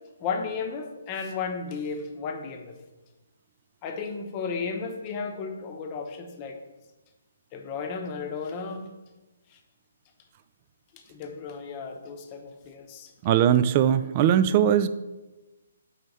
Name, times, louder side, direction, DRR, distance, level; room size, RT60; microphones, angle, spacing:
voice 1, 0.2-2.8 3.8-6.6 7.5-8.9 10.9-13.1, left 5 dB, 30° left, 3 dB, 0.8 m, -34 dB
voice 2, 13.2-14.9, right 10 dB, 35° right, 13 dB, 0.3 m, -20 dB
4.8 x 4.3 x 5.4 m, 1.1 s
figure-of-eight pair, 140°, 0 cm